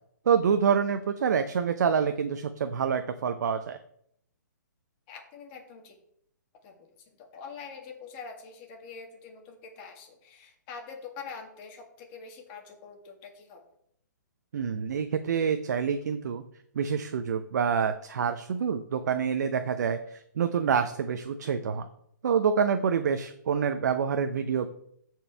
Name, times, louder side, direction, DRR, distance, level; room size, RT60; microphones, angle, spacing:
voice 1, 0.3-3.8 14.5-16.4 16.7-21.8 22.2-24.7, right 7 dB, 60° right, 8 dB, 0.6 m, -27 dB
voice 2, 5.1-5.9 6.6-13.6, left 5 dB, 30° left, 2 dB, 1.8 m, -45 dB
13.5 x 4.6 x 3.4 m, 0.69 s
hypercardioid pair, 135°, 10 cm